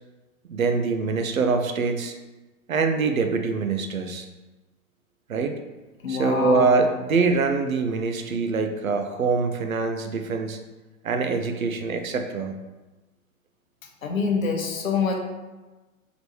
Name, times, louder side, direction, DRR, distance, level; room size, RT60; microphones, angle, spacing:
voice 1, 0.5-2.1 2.7-4.3 5.3-5.5 6.1-10.6 11.0-12.5, right 4 dB, 80° right, 6 dB, 0.6 m, -24 dB
voice 2, 6.0-6.8 14.0-15.2, left 5 dB, 75° left, 3 dB, 0.9 m, -25 dB
3.9 x 3.5 x 3.1 m, 1.2 s
figure-of-eight pair, 105°, 41 cm